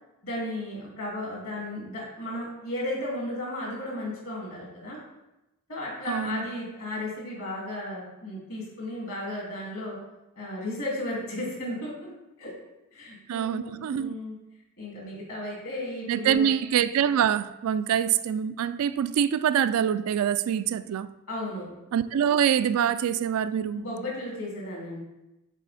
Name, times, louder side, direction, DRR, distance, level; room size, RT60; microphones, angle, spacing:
voice 1, 0.2-5.0 5.7-10.0 10.4-12.1 12.4-12.5 12.9-14.4 14.8-16.5 21.3-21.7 23.8-25.0, left 1 dB, 65° left, 2.4 m, -34 dB
voice 2, 6.1-6.5 13.3-14.1 16.1-21.1 21.9-23.8, right 9 dB, 75° right, 0.3 m, -25 dB
6.4 x 4.1 x 4.1 m
head